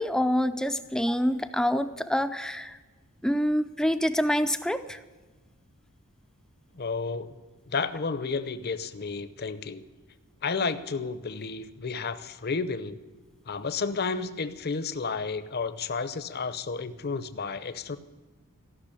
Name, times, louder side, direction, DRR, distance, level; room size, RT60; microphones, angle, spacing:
voice 1, 0.0-2.8 3.2-5.0, equal, 5° left, 10 dB, 0.4 m, -26 dB
voice 2, 6.7-7.4 7.7-9.8 10.4-13.0 13.5-18.0, left 4 dB, 45° left, 13 dB, 0.7 m, -32 dB
15.0 x 6.2 x 9.9 m, 1.2 s
head